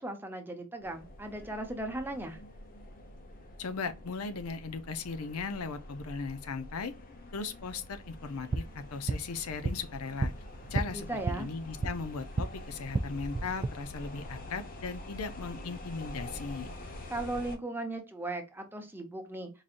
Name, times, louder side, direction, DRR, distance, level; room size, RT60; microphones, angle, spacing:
voice 1, 0.0-2.4 10.9-11.5 17.1-19.5, right 2 dB, 10° right, 0.8 m, -37 dB
sound 1, 0.8-17.6, left 1 dB, 40° left, 0.8 m, -46 dB
voice 2, 3.6-6.9 7.3-10.3 10.7-16.7, left 4 dB, 70° left, 0.5 m, -38 dB
sound 2, 8.3-12.5 12.8-13.7, right 2 dB, 25° right, 0.3 m, -34 dB
4.8 x 2.7 x 2.5 m
head